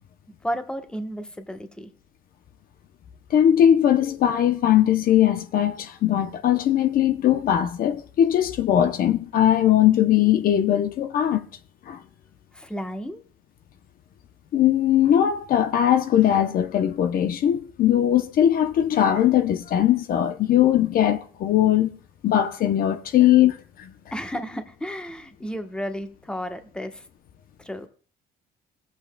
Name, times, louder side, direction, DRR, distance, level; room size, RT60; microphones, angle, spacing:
voice 1, 0.4-1.9 12.5-13.2 24.1-27.1 27.6-27.9, equal, 5° left, 1.1 m, -32 dB
voice 2, 3.3-11.4 11.9-12.0 14.5-21.9 22.2-23.9, left 11 dB, 60° left, 0.8 m, -20 dB
16.5 x 8.1 x 2.3 m
cardioid pair, 110°, 17 cm